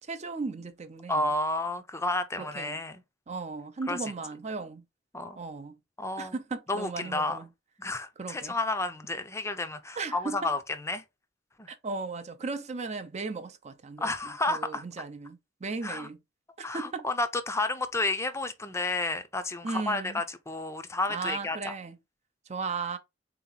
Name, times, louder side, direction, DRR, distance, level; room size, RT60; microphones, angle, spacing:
voice 1, 0.1-1.3 2.4-2.8 3.3-4.8 5.4-5.8 6.2-7.5 8.2-8.5 10.0-10.5 11.7-16.2 16.6-17.1 19.6-20.2 21.1-22.0 22.5-23.0, right 4 dB, 35° right, 0.5 m, -36 dB
voice 2, 1.1-3.0 3.9-4.0 5.1-5.4 6.0-6.3 6.7-7.4 7.8-11.0 11.6-11.7 14.0-14.8 15.8-16.1 16.6-21.7, left 2 dB, 15° left, 0.5 m, -31 dB
3.9 x 2.9 x 3.8 m
head